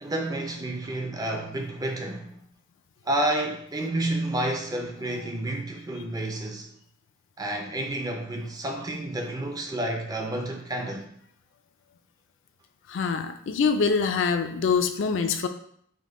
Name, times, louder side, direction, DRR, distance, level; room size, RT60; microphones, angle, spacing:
voice 1, 0.0-2.4 3.0-6.7 7.4-11.1 13.0-13.1, right 1 dB, 15° right, 0.4 m, -30 dB
voice 2, 12.9-15.5, left 5 dB, 55° left, 0.3 m, -24 dB
5.3 x 2.2 x 3.6 m
head